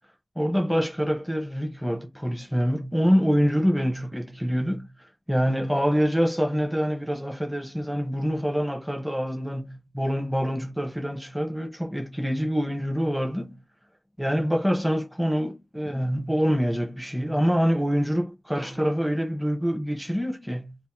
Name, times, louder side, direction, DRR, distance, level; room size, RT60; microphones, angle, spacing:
voice 1, 0.4-4.9 5.3-13.6 14.2-20.8, equal, 5° right, 0.8 m, -25 dB
2.6 x 2.5 x 3.7 m
wide cardioid pair, 70°, 0 cm